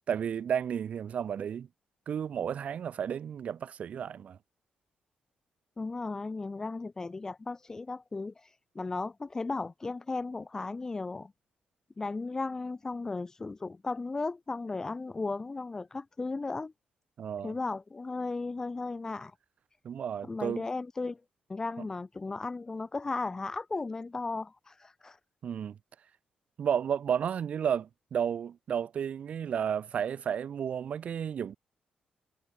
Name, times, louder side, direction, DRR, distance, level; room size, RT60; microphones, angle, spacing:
voice 1, 0.1-1.7 2.1-4.4 17.2-17.5 19.8-20.6 21.8-21.9 25.4-25.8 26.6-31.6, right 8 dB, 50° right, 0.4 m, -32 dB
voice 2, 5.8-11.3 12.0-16.7 17.4-19.3 20.2-21.2 21.5-25.2, left 3 dB, 20° left, 0.4 m, -35 dB
cardioid pair, 145°, 3 cm